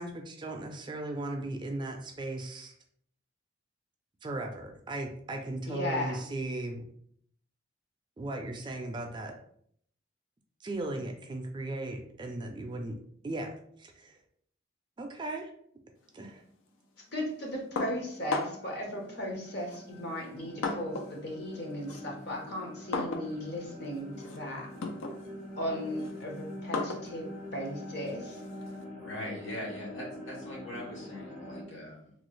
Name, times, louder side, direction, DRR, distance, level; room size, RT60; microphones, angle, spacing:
voice 1, 0.0-2.7 4.2-6.8 8.2-9.3 10.6-13.0 13.2-13.5 13.8-14.2 15.0-15.5 16.1-16.4, right 2 dB, 25° right, 3 dB, 0.3 m, -37 dB
voice 2, 5.7-6.2 17.1-24.7 25.6-28.4, left 1 dB, 55° left, 0 dB, 0.9 m, -36 dB
sound 1, 17.3-31.6, left 1 dB, 40° left, 0.5 m, -45 dB
sound 2, 17.8-18.8 19.7-21.2 21.5-28.8, left 3 dB, 90° left, 0.5 m, -38 dB
voice 3, 29.0-32.1, left 1 dB, 75° left, -4 dB, 1.2 m, -41 dB
3.0 x 2.3 x 3.1 m, 0.65 s
head